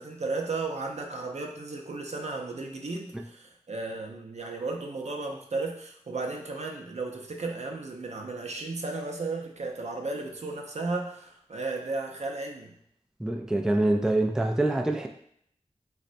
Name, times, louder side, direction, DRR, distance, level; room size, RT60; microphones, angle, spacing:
voice 1, 0.0-12.8, right 3 dB, 65° right, 1 dB, 0.5 m, -34 dB
voice 2, 13.2-15.1, right 1 dB, 5° right, 3 dB, 0.3 m, -25 dB
4.0 x 2.1 x 2.6 m, 0.68 s
wide cardioid pair, 45°, 12 cm